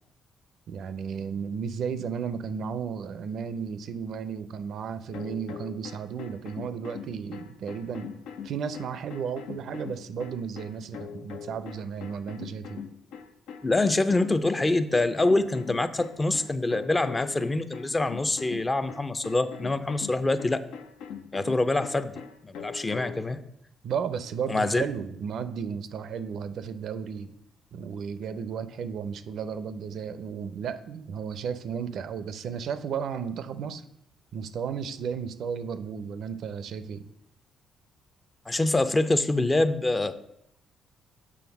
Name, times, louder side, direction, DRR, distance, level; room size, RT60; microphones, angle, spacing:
voice 1, 0.7-8.1 8.4-12.8 23.8-27.3 27.7-33.8 34.3-37.0, right 7 dB, 70° right, 13 dB, 0.5 m, -34 dB
sound 1, 5.1-23.3, left 7 dB, 85° left, 0.5 m, -42 dB
voice 2, 13.6-20.6 21.3-23.4 24.5-24.8 38.5-40.1, left 2 dB, 20° left, 12 dB, 0.5 m, -25 dB
7.2 x 3.4 x 5.9 m, 0.75 s
cardioid pair, 90°, 0 cm